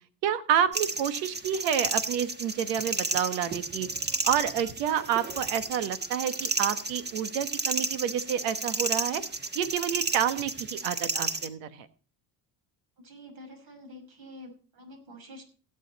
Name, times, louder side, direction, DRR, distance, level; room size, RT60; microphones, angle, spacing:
voice 1, 0.2-3.9 4.2-9.2 9.5-11.9, right 9 dB, 90° right, 12 dB, 1.4 m, -29 dB
sound 1, 0.7-11.5, right 3 dB, 20° right, 1.5 m, -32 dB
voice 2, 13.0-15.4, left 1 dB, 55° right, 5 dB, 5.8 m, -47 dB
17.0 x 8.4 x 4.1 m, 0.36 s
supercardioid pair, 90°, 45 cm